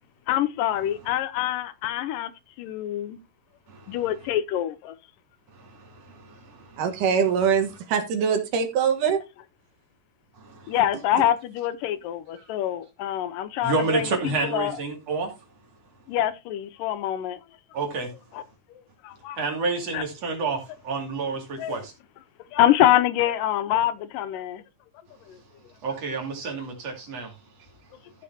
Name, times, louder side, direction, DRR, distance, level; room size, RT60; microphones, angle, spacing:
voice 1, 0.3-2.3 2.6-3.2 3.9-5.0 10.7-14.8 16.1-17.4 18.3-18.4 18.7-19.4 19.9-20.0 21.6-21.8 22.5-24.6 25.3-25.4, left 12 dB, 85° left, 2.4 m, -25 dB
voice 2, 5.5-6.8 10.4-10.7 13.6-15.3 17.7-18.1 19.4-21.9 25.8-27.3, right 4 dB, 50° right, 3.5 m, -29 dB
voice 3, 6.8-9.2, right 7 dB, 75° right, 3.0 m, -23 dB
14.5 x 6.7 x 2.9 m
omnidirectional pair, 3.9 m